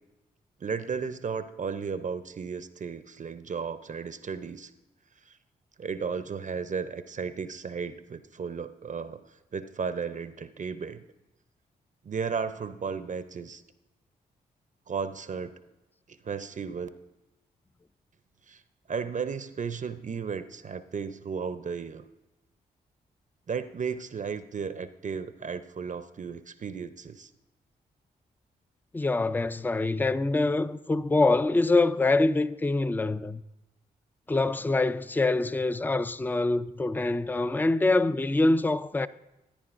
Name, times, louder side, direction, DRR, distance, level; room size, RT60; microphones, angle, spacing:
voice 1, 0.6-4.7 5.3-5.4 5.8-9.2 9.5-11.0 12.0-13.6 14.9-15.5 16.1-16.9 18.5-18.6 18.9-22.0 23.5-27.3, right 6 dB, 45° right, 0.6 m, -34 dB
voice 2, 28.9-33.4 34.3-39.1, left 2 dB, 10° left, 0.4 m, -25 dB
13.5 x 10.0 x 2.5 m
supercardioid pair, 40°, 18 cm